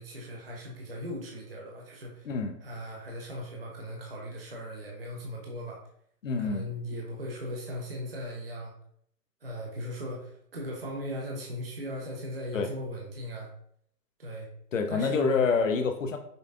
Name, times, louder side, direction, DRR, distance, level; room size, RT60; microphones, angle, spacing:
voice 1, 0.0-2.3 2.6-5.8 6.4-8.7 9.4-13.5 14.2-14.5 14.9-15.4, equal, 40° right, -1 dB, 0.4 m, -38 dB
voice 2, 2.3-2.6 6.2-6.7 12.5-12.7 14.7-16.2, left 5 dB, 55° left, 6 dB, 0.5 m, -27 dB
5.2 x 2.2 x 2.4 m, 0.66 s
hypercardioid pair, 170°, 49 cm